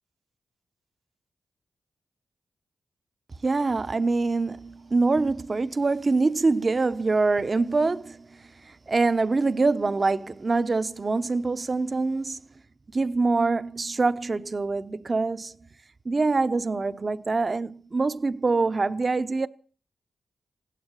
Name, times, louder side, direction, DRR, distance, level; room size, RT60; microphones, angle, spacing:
voice 1, 3.4-12.4 12.9-15.6 16.0-19.5, right 3 dB, 45° right, 0.8 m, -25 dB
16.5 x 12.0 x 6.5 m
supercardioid pair, 45°, 0 cm